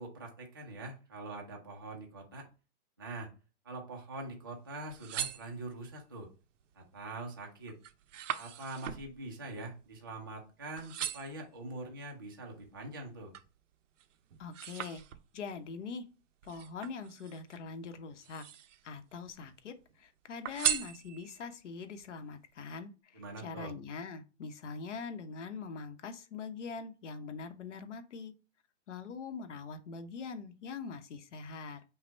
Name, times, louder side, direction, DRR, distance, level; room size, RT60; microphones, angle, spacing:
voice 1, 0.0-2.5 3.0-3.3 3.6-6.3 6.7-7.8 8.4-13.4 23.1-23.7, right 2 dB, 20° right, 0 dB, 0.3 m, -44 dB
sound 1, 4.7-6.0 6.6-7.0 7.4-10.5 10.8-11.5 12.1-13.6 14.0-15.5 16.4-17.6 18.1-18.9 19.2-20.0 20.4-21.5 22.0-22.1, right 10 dB, 85° right, 0.6 m, -39 dB
voice 2, 14.4-15.0 15.3-16.1 16.4-18.4 18.8-28.3 28.9-31.8, left 5 dB, 75° left, 8 dB, 1.0 m, -43 dB
5.7 x 2.1 x 4.5 m, 0.33 s
hypercardioid pair, 170°, 36 cm